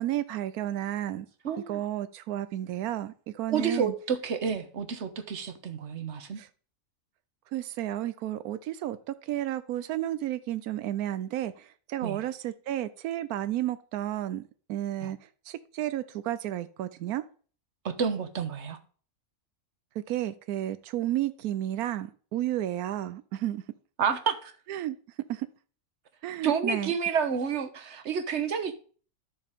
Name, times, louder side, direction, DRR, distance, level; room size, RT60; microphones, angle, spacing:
voice 1, 0.0-1.3 1.7-3.9 6.4-6.5 7.5-14.4 14.7-15.2 15.5-17.2 20.1-23.6 24.7-25.0 25.3-25.5 26.2-26.9, right 13 dB, 90° right, 1.1 m, -32 dB
voice 2, 1.4-1.9 3.5-6.4 12.0-12.2 15.0-15.1 17.8-18.8 24.0-24.5 26.4-28.7, right 6 dB, 55° right, 1.3 m, -29 dB
13.0 x 6.7 x 3.6 m
omnidirectional pair, 1.5 m